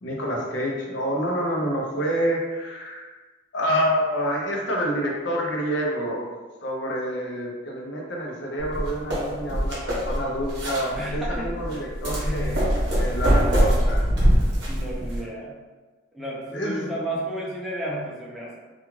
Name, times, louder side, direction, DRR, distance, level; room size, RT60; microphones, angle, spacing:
voice 1, 0.0-3.1 3.5-6.3 6.6-12.7 13.0-14.0 16.5-16.9, equal, 65° left, -1 dB, 0.5 m, -27 dB
sound 1, 8.6-15.2, equal, 60° right, 0.8 m, -23 dB
voice 2, 10.9-11.6 12.2-12.7 14.7-15.6 16.1-18.6, right 1 dB, ahead, -6 dB, 0.5 m, -32 dB
2.3 x 2.3 x 3.0 m, 1.3 s
head